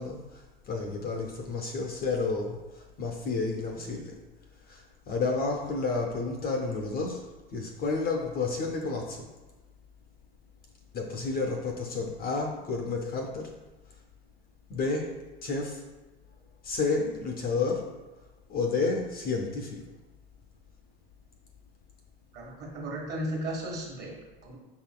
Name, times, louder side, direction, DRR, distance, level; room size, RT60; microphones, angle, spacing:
voice 1, 0.0-4.1 4.7-7.2 7.5-9.3 10.9-13.5 14.7-15.1 15.4-15.8 16.6-17.9 18.5-19.8, left 3 dB, 30° left, 1 dB, 0.5 m, -31 dB
voice 2, 22.3-24.6, right 1 dB, 30° right, -1 dB, 1.3 m, -35 dB
5.5 x 3.7 x 2.2 m, 1.2 s
hypercardioid pair, 85°, 31 cm